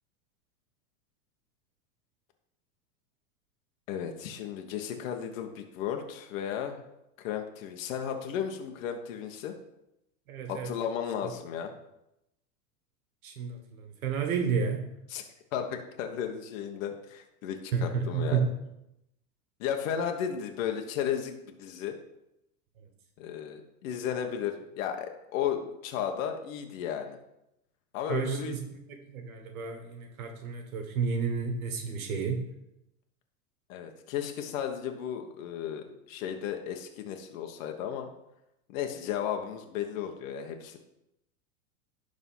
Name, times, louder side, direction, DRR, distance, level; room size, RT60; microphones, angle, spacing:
voice 1, 3.9-6.8 7.2-9.5 10.5-11.7 15.1-15.2 15.5-18.5 19.6-22.0 23.2-27.2 27.9-28.6 33.7-38.1 38.7-40.8, left 8 dB, 70° left, 4 dB, 1.3 m, -34 dB
voice 2, 10.3-10.7 13.2-14.8 17.7-18.5 28.1-32.4, right 6 dB, 80° right, 4 dB, 1.6 m, -31 dB
11.5 x 4.0 x 5.6 m, 0.85 s
supercardioid pair, 120°, 42 cm